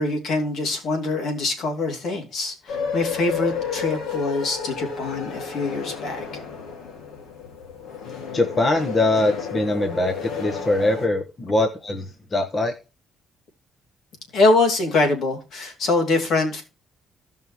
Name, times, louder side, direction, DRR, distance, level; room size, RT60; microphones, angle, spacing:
voice 1, 0.0-6.4 14.3-16.6, left 2 dB, 65° left, 2.8 m, -24 dB
sound 1, 2.7-11.1, left 6 dB, 80° left, 2.2 m, -32 dB
voice 2, 8.3-12.7, left 2 dB, 35° left, 1.3 m, -22 dB
16.5 x 5.5 x 3.1 m
cardioid pair, 90°, 0 cm